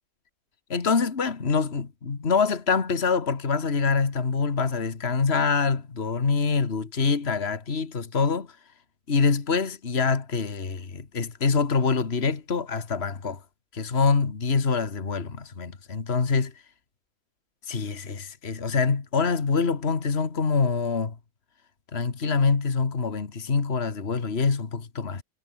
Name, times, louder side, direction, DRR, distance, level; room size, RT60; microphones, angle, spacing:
voice 1, 0.7-8.5 9.1-13.4 13.7-16.5 17.7-21.1 21.9-25.2, left 5 dB, 50° left, 2.2 m, -25 dB
omnidirectional pair, 1.4 m